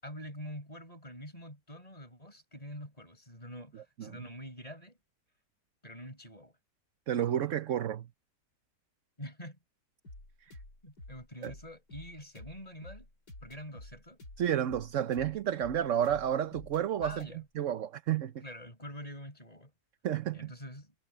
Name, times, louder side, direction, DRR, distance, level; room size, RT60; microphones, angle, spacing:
voice 1, 0.0-5.0 5.8-6.6 9.2-9.6 10.8-13.1 13.4-14.2 17.0-17.5 18.4-19.7 20.3-20.9, equal, 20° left, 7.5 m, -46 dB
voice 2, 7.1-8.1 11.4-11.5 14.4-17.3 17.5-18.3 20.0-20.5, right 10 dB, 55° right, 1.1 m, -31 dB
sound 1, 10.0-17.3, left 1 dB, 80° left, 8.0 m, -50 dB
omnidirectional pair, 1.7 m